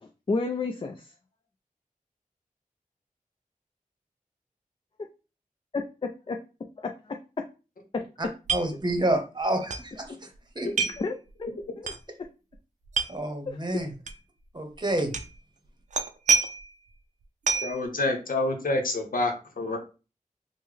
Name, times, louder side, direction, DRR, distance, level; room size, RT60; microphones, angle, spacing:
voice 1, 0.0-1.1 5.7-6.4 6.8-7.2 7.9-8.0 10.6-10.7 11.0-11.1 11.4-11.5 11.8-11.9 13.5-13.6, left 3 dB, 35° left, 5 dB, 0.4 m, -31 dB
voice 2, 8.5-10.3 10.5-10.9 13.1-13.9 14.5-15.1, right 1 dB, 30° right, 5 dB, 0.9 m, -28 dB
sound 1, 8.5-8.7 9.0-9.1 9.7-9.8 10.8-11.1 11.8-12.0 12.9-13.1 14.1-14.2 15.1-15.4 15.9-16.7 17.5-17.8, right 5 dB, 55° right, 0.4 m, -26 dB
voice 3, 17.6-19.8, left 2 dB, 75° left, 3 dB, 0.8 m, -27 dB
3.5 x 2.1 x 3.2 m, 0.32 s
wide cardioid pair, 50°, 14 cm